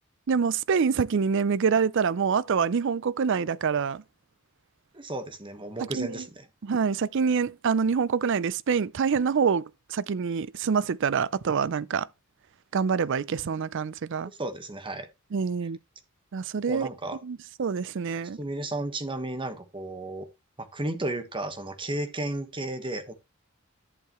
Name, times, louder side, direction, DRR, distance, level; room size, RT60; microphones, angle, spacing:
voice 1, 0.3-4.0 5.9-6.2 6.6-12.1 12.7-14.3 15.3-15.8 16.3-16.9 17.2-18.4, right 6 dB, 60° right, 0.4 m, -26 dB
voice 2, 4.9-6.5 14.4-15.1 16.7-17.2 18.4-20.3 20.6-23.1, right 2 dB, 25° right, 1.3 m, -33 dB
11.0 x 6.7 x 3.0 m
head